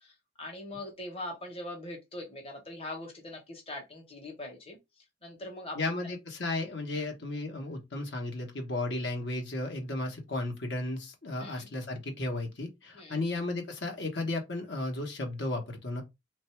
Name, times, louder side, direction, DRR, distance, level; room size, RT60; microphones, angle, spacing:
voice 1, 0.0-4.8 5.2-5.8 6.9-7.1 11.4-11.7 12.9-13.2, left 1 dB, 30° left, 1.1 m, -42 dB
voice 2, 5.7-16.0, left 2 dB, 65° left, 1.2 m, -34 dB
3.2 x 2.6 x 4.4 m
head